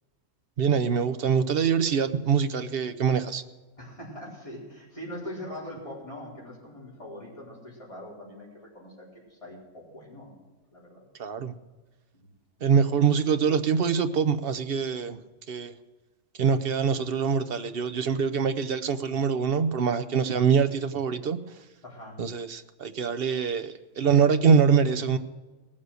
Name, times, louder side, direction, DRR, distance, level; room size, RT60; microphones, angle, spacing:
voice 1, 0.6-3.4 11.2-11.5 12.6-15.2 15.5-15.7 16.4-21.4 22.2-25.2, right 6 dB, 55° right, 10 dB, 0.9 m, -24 dB
voice 2, 3.8-10.4 10.7-11.0 12.1-12.3 21.8-22.2, left 1 dB, 25° left, -5 dB, 4.7 m, -42 dB
18.5 x 7.5 x 6.5 m, 1.2 s
omnidirectional pair, 1.2 m